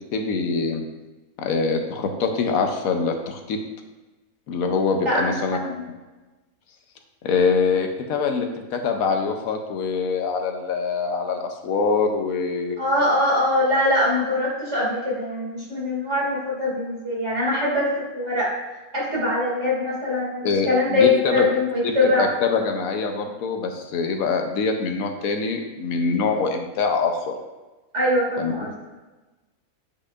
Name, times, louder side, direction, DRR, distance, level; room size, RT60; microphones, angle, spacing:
voice 1, 0.1-0.9 1.4-3.6 4.5-5.6 7.2-12.8 20.4-21.5 21.8-27.3 28.4-28.5, left 4 dB, 80° left, 4 dB, 1.1 m, -24 dB
voice 2, 5.0-5.8 12.8-18.5 18.9-22.3 27.9-28.7, left 2 dB, 50° right, -5 dB, 2.6 m, -22 dB
8.5 x 5.1 x 2.4 m, 1.2 s
omnidirectional pair, 1.5 m